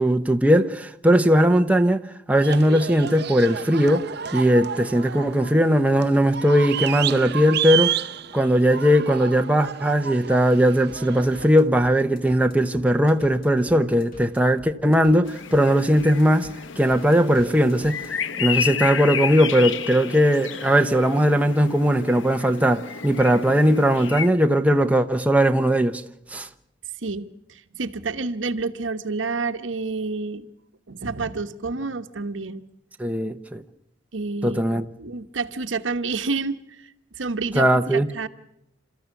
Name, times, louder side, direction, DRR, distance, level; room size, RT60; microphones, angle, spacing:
voice 1, 0.0-2.0 2.3-8.0 8.3-16.5 16.8-18.0 18.4-26.0 26.3-26.5 33.0-33.6 34.4-34.8 37.6-38.1, equal, 10° right, 0.8 m, -19 dB
sound 1, 2.4-11.5, right 9 dB, 60° right, 0.7 m, -31 dB
sound 2, 10.9-18.1, equal, 50° left, 4.3 m, -46 dB
sound 3, 15.2-24.3, left 7 dB, 80° left, 0.9 m, -32 dB
voice 2, 27.0-30.5 30.9-32.6 34.1-34.6 35.0-36.9 37.2-38.3, right 3 dB, 90° right, 1.2 m, -29 dB
28.5 x 14.0 x 8.3 m
head